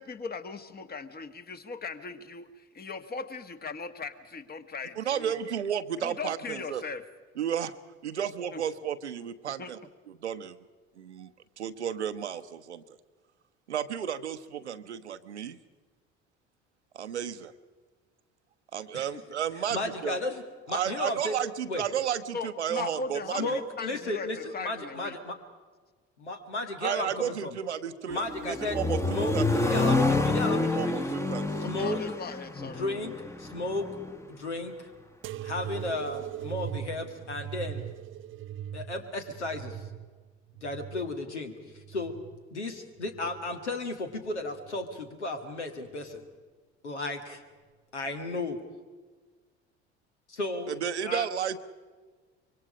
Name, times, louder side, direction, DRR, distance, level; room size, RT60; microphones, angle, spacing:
voice 1, 0.0-5.3 6.0-7.0 8.5-8.6 9.6-9.7 22.3-25.1 31.6-32.8, left 4 dB, 30° left, 10 dB, 1.6 m, -38 dB
voice 2, 5.0-6.8 7.4-7.7 8.0-9.8 10.1-10.6 11.0-11.3 11.6-12.8 13.7-15.6 16.9-17.5 18.7-20.2 20.7-23.4 26.8-29.8 30.7-31.7 50.7-51.6, right 9 dB, 80° right, 11 dB, 0.9 m, -33 dB
voice 3, 19.7-21.4 21.7-21.8 23.4-25.4 26.2-27.6 28.1-28.8 29.1-31.1 31.6-32.0 32.6-33.9 34.3-34.9 35.4-37.9 38.7-39.8 40.6-42.1 42.5-46.2 46.8-47.4 47.9-48.6 50.3-50.7 51.1-51.3, left 2 dB, 80° left, 6 dB, 2.0 m, -34 dB
Accelerating revving vroom, 28.1-34.1, left 2 dB, 10° left, 1.2 m, -28 dB
sound 1, 35.2-42.4 43.0-43.7 44.5-45.0 46.0-46.1, right 10 dB, 35° right, 0.6 m, -40 dB
25.0 x 23.5 x 5.0 m, 1.4 s
figure-of-eight pair, 60°, 34 cm